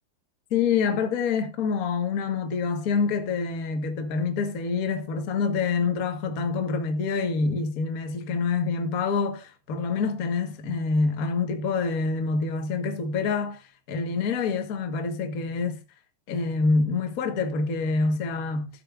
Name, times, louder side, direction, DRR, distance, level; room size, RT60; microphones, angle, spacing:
voice 1, 0.5-15.8 16.3-18.7, left 4 dB, 75° left, 0.8 m, -26 dB
13.5 x 8.1 x 2.4 m
omnidirectional pair, 4.0 m